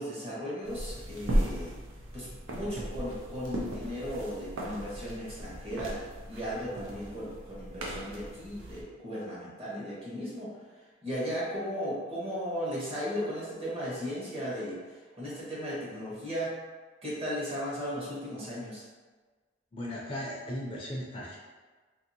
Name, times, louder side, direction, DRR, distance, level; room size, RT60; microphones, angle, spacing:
voice 1, 0.0-1.8 2.1-6.0 6.3-10.6 11.0-16.5 17.0-18.8, equal, 30° right, -7 dB, 1.1 m, -36 dB
sound 1, 0.6-8.8, right 1 dB, 85° right, 0.5 m, -36 dB
voice 2, 19.7-21.4, equal, 25° left, -4 dB, 0.4 m, -37 dB
2.8 x 2.7 x 2.7 m, 1.4 s
head